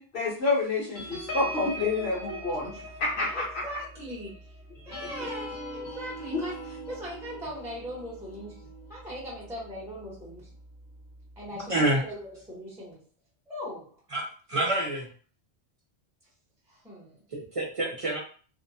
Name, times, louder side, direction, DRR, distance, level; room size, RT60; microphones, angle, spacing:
voice 1, 0.0-2.7 3.0-3.6 6.3-6.4, left 3 dB, 70° left, -6 dB, 1.2 m, -28 dB
sound 1, 0.9-9.9 10.3-10.5 10.8-11.1, equal, 50° left, 1.0 m, -41 dB
voice 2, 3.2-4.6 4.8-10.5 11.4-13.0 13.5-14.0 16.7-17.2, equal, 5° right, -6 dB, 0.7 m, -40 dB
voice 3, 11.7-12.0 14.1-15.1 17.3-18.2, right 1 dB, 40° right, -2 dB, 0.5 m, -27 dB
2.6 x 2.1 x 2.6 m, 0.42 s
omnidirectional pair, 1.1 m